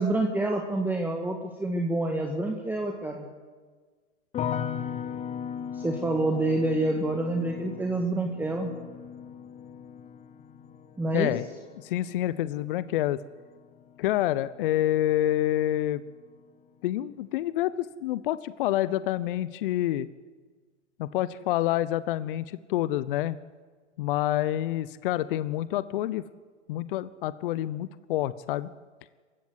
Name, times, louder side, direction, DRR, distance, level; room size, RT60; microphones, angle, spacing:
voice 1, 0.0-3.3 5.7-8.7 11.0-11.3, right 2 dB, 5° right, 2 dB, 1.8 m, -27 dB
sound 1, 4.3-15.4 15.7-16.4, left 8 dB, 20° left, 0.9 m, -39 dB
voice 2, 11.1-11.4 11.8-13.2 14.0-16.0 16.8-20.1 21.0-23.4 24.0-26.2 26.7-28.7, left 13 dB, 45° left, 16 dB, 0.8 m, -27 dB
26.5 x 15.5 x 8.0 m, 1.5 s
hypercardioid pair, 115°, 36 cm